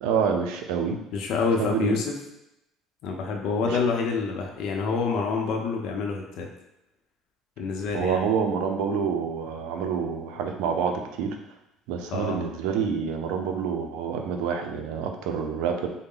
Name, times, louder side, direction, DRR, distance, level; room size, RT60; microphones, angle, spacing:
voice 1, 0.0-1.0 1.6-2.0 3.6-3.8 7.9-11.4 11.9-15.9, right 6 dB, 85° right, 4 dB, 0.5 m, -27 dB
voice 2, 1.1-2.1 3.0-6.5 7.6-8.2 12.1-12.4, left 4 dB, 65° left, 1 dB, 0.7 m, -27 dB
3.8 x 2.1 x 3.8 m, 0.88 s
cardioid pair, 125°, 0 cm